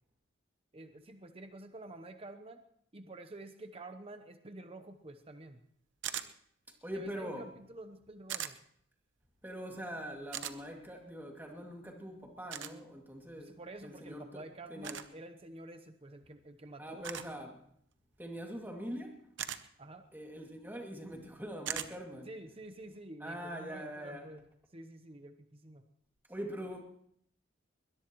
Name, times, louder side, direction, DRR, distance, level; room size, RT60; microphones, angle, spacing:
voice 1, 0.7-2.6 2.9-5.6 6.9-8.6 13.4-17.1 19.8-20.1 22.3-24.4 24.7-25.8, right 2 dB, 30° right, 0.8 m, -49 dB
sound 1, 6.0-6.3 8.3-8.5 10.3-10.6 12.5-12.7 14.8-15.1 17.0-17.3 19.4-19.6 21.7-21.9, right 10 dB, 65° right, 0.8 m, -38 dB
voice 2, 6.8-7.5 9.4-13.6 13.8-14.4 14.7-15.0 16.8-17.6 18.2-19.2 20.1-22.3 23.2-24.3 26.3-26.8, equal, 10° right, 2.4 m, -43 dB
21.5 x 21.0 x 3.1 m
head